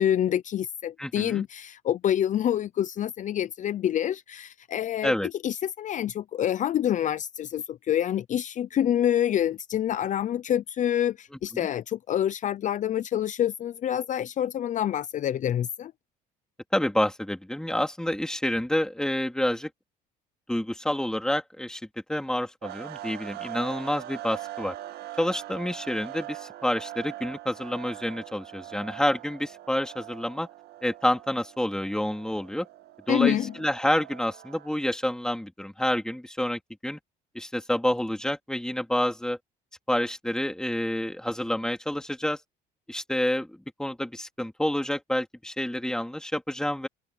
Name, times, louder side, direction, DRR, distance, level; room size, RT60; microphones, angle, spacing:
voice 1, 0.0-5.1 5.4-15.9 33.1-33.5, left 10 dB, 45° left, 0.6 m, -27 dB
voice 2, 1.0-1.4 5.0-5.3 11.5-11.7 16.7-19.7 20.5-21.8 22.1-24.7 25.2-30.5 30.8-32.7 33.1-37.0 37.3-39.4 39.9-42.4 42.9-46.9, left 1 dB, 5° left, 3.3 m, -28 dB
sound 1, 22.6-35.0, right 14 dB, 70° right, 1.9 m, -42 dB
cardioid pair, 110°, 17 cm